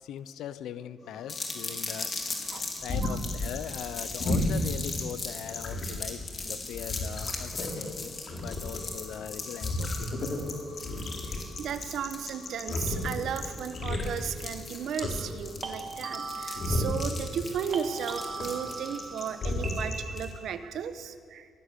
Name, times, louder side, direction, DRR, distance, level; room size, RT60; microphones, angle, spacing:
voice 1, 0.0-10.3, left 10 dB, 80° left, 14 dB, 0.9 m, -41 dB
sound 1, 1.0-20.1, left 1 dB, 55° left, 4.4 m, -34 dB
sound 2, 1.3-20.3, left 3 dB, 35° left, 4.3 m, -39 dB
sound 3, 10.7-10.9 15.6-17.5 17.7-20.6, right 4 dB, 35° right, 3.3 m, -40 dB
voice 2, 11.6-21.5, right 8 dB, 70° right, 11 dB, 1.3 m, -35 dB
23.0 x 18.5 x 8.4 m, 2.2 s
cardioid pair, 90°, 0 cm